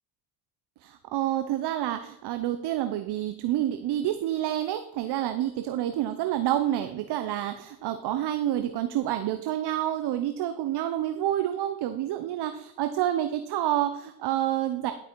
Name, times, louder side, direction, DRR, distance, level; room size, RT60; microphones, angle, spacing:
voice 1, 0.8-14.9, right 12 dB, 55° right, 8 dB, 0.9 m, -28 dB
11.5 x 6.2 x 4.7 m, 0.81 s
hypercardioid pair, 60°, 48 cm